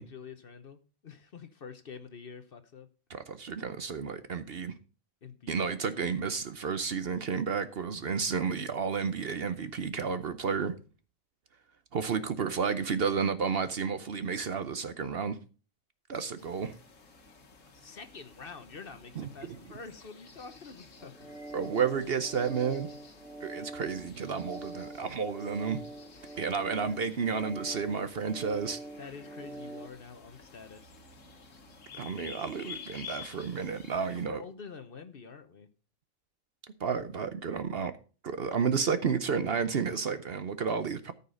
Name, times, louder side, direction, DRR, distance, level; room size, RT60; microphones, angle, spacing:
voice 1, 0.0-2.9 5.2-5.6 17.7-21.4 26.2-26.7 29.0-30.9 34.0-35.7, left 5 dB, 50° left, 1.0 m, -47 dB
voice 2, 3.1-4.7 5.5-10.7 11.9-15.4 16.1-16.7 19.2-19.6 21.5-22.9 23.4-25.8 26.4-28.8 32.0-34.4 36.8-37.9 38.2-41.1, right 6 dB, 55° right, 0.9 m, -31 dB
sound 1, 16.4-34.3, left 5 dB, 70° left, 1.8 m, -51 dB
sound 2, 21.0-29.9, right 2 dB, ahead, 1.3 m, -44 dB
13.5 x 5.6 x 5.1 m
omnidirectional pair, 1.4 m